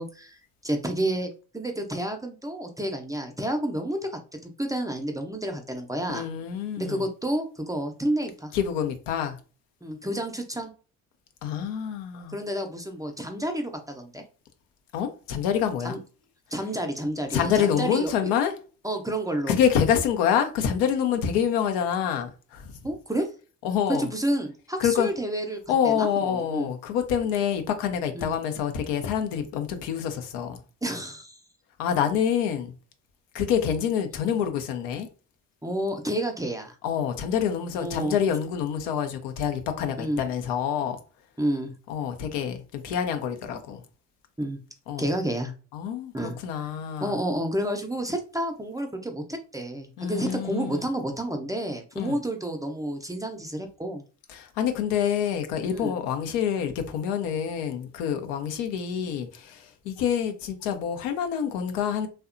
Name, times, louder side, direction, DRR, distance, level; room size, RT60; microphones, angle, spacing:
voice 1, 0.0-4.0 4.4-6.3 6.8-8.5 9.8-10.7 12.3-14.2 15.8-16.0 16.5-18.1 18.8-19.5 22.8-23.3 24.0-25.6 25.8-26.7 28.1-28.3 30.8-31.4 35.6-36.7 37.8-38.2 40.0-40.2 41.4-41.7 44.4-44.6 45.0-45.5 46.1-46.4 47.0-54.0 55.7-55.9, right 1 dB, 10° right, 0.5 m, -30 dB
voice 2, 6.1-7.0 8.5-9.4 11.4-12.4 14.9-16.0 17.3-18.5 19.5-22.7 23.6-24.1 24.8-25.1 25.7-30.6 31.8-32.7 33.3-35.1 36.8-41.0 41.9-43.8 44.9-45.1 45.7-47.2 50.0-50.8 52.0-52.2 54.3-62.1, left 8 dB, 75° left, 0.6 m, -27 dB
2.7 x 2.2 x 2.5 m
hypercardioid pair, 50°, 42 cm